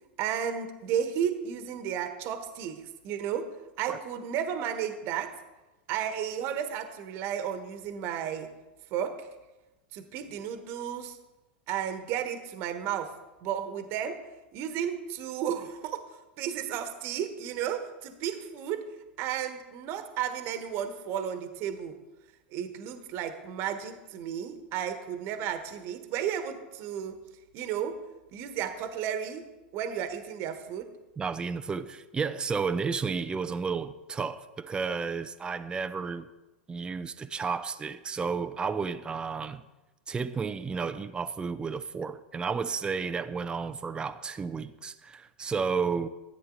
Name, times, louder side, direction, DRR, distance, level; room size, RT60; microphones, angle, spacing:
voice 1, 0.2-5.3 5.9-8.5 8.9-9.3 9.9-11.2 11.7-13.1 13.4-14.2 14.5-16.0 16.4-18.9 19.2-22.0 22.5-27.2 27.5-28.0 28.3-29.5 29.7-30.9, right 9 dB, 45° right, 1.3 m, -33 dB
voice 2, 31.2-36.3 36.7-39.6 40.1-46.1, right 5 dB, 15° right, 0.6 m, -32 dB
13.5 x 8.8 x 3.9 m
figure-of-eight pair, 95°, 6 cm